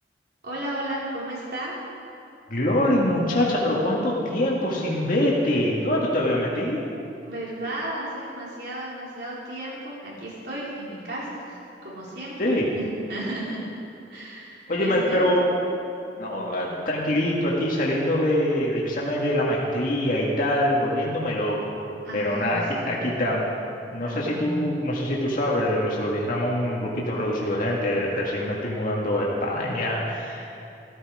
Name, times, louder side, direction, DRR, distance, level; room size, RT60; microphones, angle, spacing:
voice 1, 0.4-1.8 7.2-12.4 12.7-13.6 14.1-15.4 22.0-23.1 24.0-24.6, right 1 dB, 65° right, -6 dB, 4.4 m, -34 dB
voice 2, 2.5-6.8 12.4-12.7 14.7-15.4 16.2-21.6 22.1-23.5 23.9-30.6, left 1 dB, 50° left, -4 dB, 2.0 m, -24 dB
15.5 x 13.0 x 5.0 m, 2.6 s
head